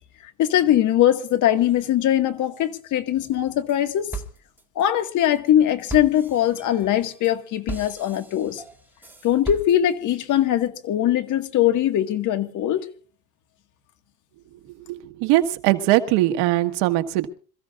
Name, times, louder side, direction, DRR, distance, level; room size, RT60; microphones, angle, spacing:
voice 1, 0.4-4.1 4.7-8.6 9.2-12.8, left 11 dB, 50° left, 1.8 m, -21 dB
sound 1, 3.2-3.8 4.1-10.2, right 3 dB, 5° right, 1.7 m, -38 dB
voice 2, 14.9-17.3, right 15 dB, 80° right, 1.6 m, -21 dB
27.0 x 15.0 x 2.5 m
cardioid pair, 145°, 39 cm